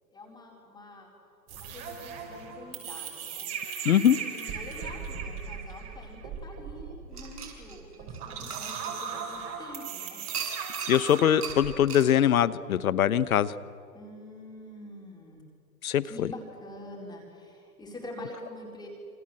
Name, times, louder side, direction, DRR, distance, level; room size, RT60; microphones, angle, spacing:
voice 1, 0.1-1.1 1.5-3.5 3.9-10.2 13.9-15.4 16.0-18.9, left 1 dB, 10° left, -1 dB, 4.2 m, -45 dB
sound 1, 1.5-11.8, right 6 dB, 30° right, 5.7 m, -38 dB
voice 2, 3.8-4.2 10.9-13.5 15.8-16.3, left 10 dB, 65° left, 17 dB, 1.2 m, -22 dB
sound 2, 7.1-9.5 10.3-11.0 11.4-11.6 11.9-12.1, right 6 dB, 75° right, 7.1 m, -38 dB
27.5 x 27.0 x 7.8 m, 2.4 s
hypercardioid pair, 135°, 46 cm